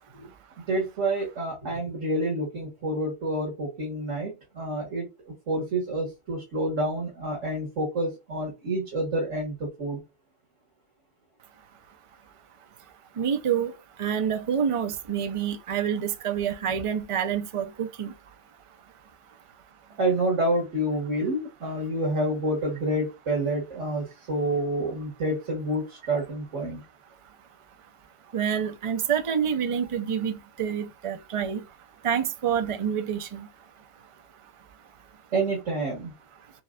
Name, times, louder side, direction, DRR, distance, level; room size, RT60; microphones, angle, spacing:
voice 1, 0.7-5.1 5.5-10.0 20.0-26.8 35.3-36.1, right 1 dB, 80° right, 2.0 m, -28 dB
voice 2, 13.2-13.7 14.0-18.1 28.3-31.6 32.0-33.5, right 8 dB, 40° right, 0.5 m, -27 dB
7.0 x 2.5 x 2.2 m
omnidirectional pair, 1.2 m